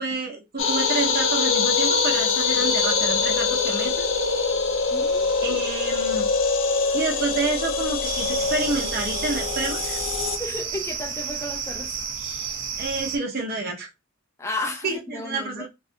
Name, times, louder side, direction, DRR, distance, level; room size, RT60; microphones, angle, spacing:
voice 1, 0.0-4.1 5.4-6.2 6.9-10.0 12.8-13.9 14.8-15.7, right 3 dB, 50° right, 1.0 m, -29 dB
sound 1, 0.6-10.4, left 4 dB, 70° left, 0.6 m, -24 dB
voice 2, 4.9-5.6 10.4-11.9 14.4-15.7, left 2 dB, 15° left, 0.3 m, -33 dB
sound 2, 8.0-13.2, right 6 dB, 75° right, 0.7 m, -31 dB
3.3 x 2.5 x 2.6 m
head